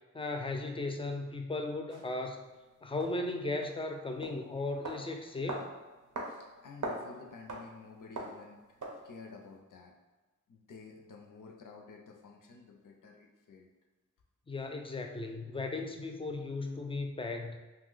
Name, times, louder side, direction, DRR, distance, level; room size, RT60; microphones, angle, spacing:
voice 1, 0.1-2.4 2.8-5.7 14.5-17.6, left 2 dB, 20° left, 4 dB, 0.3 m, -36 dB
sound 1, 1.9-2.0 3.0-3.1 3.6-3.8 4.2-4.4 4.8-5.0 5.5-5.7 6.2-6.3 6.6-7.1 7.5-7.7 8.2-8.4 8.8-9.0, right 2 dB, 80° right, 0.6 m, -38 dB
voice 2, 6.2-9.9 10.5-13.7, left 4 dB, 85° left, 1 dB, 0.5 m, -52 dB
2.7 x 2.1 x 3.7 m, 1.2 s
wide cardioid pair, 45°, 31 cm